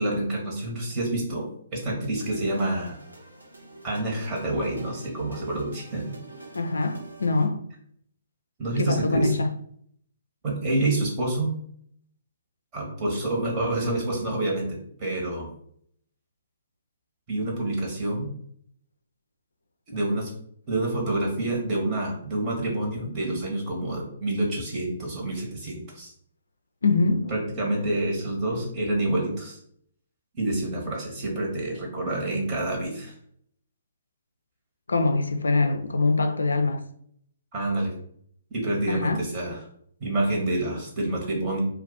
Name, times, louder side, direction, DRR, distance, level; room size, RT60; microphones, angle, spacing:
voice 1, 0.0-3.0 3.8-6.0 8.6-9.3 10.4-11.5 12.7-15.5 17.3-18.3 19.9-20.3 20.7-26.1 27.3-29.6 30.4-33.1 37.5-37.9 38.5-39.6 40.0-41.6, right 2 dB, 30° right, 1.2 m, -28 dB
sound 1, 2.2-7.5, right 2 dB, 80° right, 0.8 m, -46 dB
voice 2, 6.5-7.6 8.8-9.5 26.8-27.3 34.9-36.9 38.9-39.2, left 3 dB, 75° left, 0.3 m, -24 dB
2.4 x 2.4 x 3.9 m
figure-of-eight pair, 125°, 0 cm